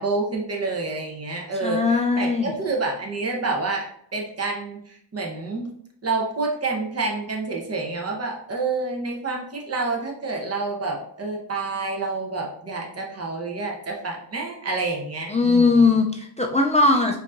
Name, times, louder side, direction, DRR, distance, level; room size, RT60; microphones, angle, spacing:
voice 1, 0.0-5.7 6.0-15.8, right 3 dB, 35° right, 0 dB, 0.9 m, -28 dB
voice 2, 1.6-2.5 15.3-17.2, left 3 dB, 15° left, 0 dB, 0.3 m, -19 dB
4.4 x 2.8 x 2.5 m, 0.67 s
cardioid pair, 90°, 45 cm